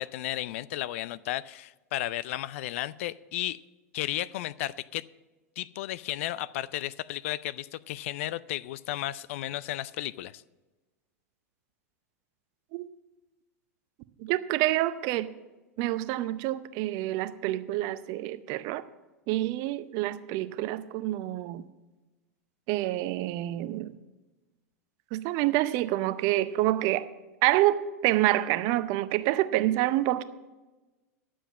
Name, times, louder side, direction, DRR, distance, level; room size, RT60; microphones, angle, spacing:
voice 1, 0.0-3.6 3.9-5.0 5.6-10.4, left 14 dB, 55° left, 0.4 m, -34 dB
voice 2, 14.2-15.3 15.8-18.8 19.3-21.7 22.7-23.9 25.1-27.1 27.4-30.2, right 15 dB, 45° right, 0.6 m, -27 dB
11.0 x 7.5 x 7.3 m
figure-of-eight pair, 90°, 8 cm